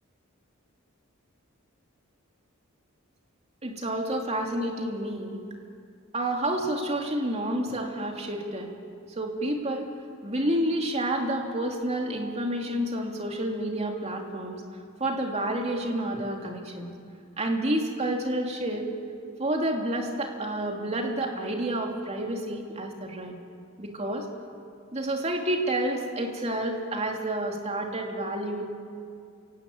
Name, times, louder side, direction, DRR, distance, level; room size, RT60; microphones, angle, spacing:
voice 1, 3.6-5.4 6.1-8.7 9.1-9.9 10.2-14.6 15.0-16.9 17.4-18.9 19.4-23.4 23.8-24.3 24.9-28.6, right 1 dB, 30° right, 1 dB, 2.9 m, -29 dB
27.5 x 17.5 x 8.6 m, 2.4 s
head